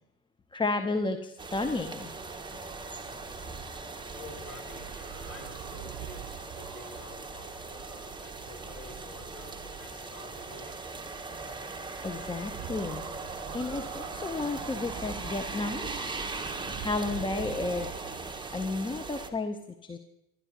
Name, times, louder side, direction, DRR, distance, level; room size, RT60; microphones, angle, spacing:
voice 1, 0.5-2.1 12.0-15.9 16.8-17.9 18.2-20.0, left 3 dB, 10° left, 7 dB, 0.7 m, -32 dB
sound 1, 1.4-19.3, right 3 dB, 10° right, 1.4 m, -39 dB
voice 2, 4.1-10.9, left 2 dB, 30° left, 1 dB, 4.5 m, -49 dB
sound 2, 4.8-9.0 12.5-18.2, right 14 dB, 45° right, 0.6 m, -46 dB
28.0 x 12.5 x 2.9 m, 0.90 s
figure-of-eight pair, 70°, 46 cm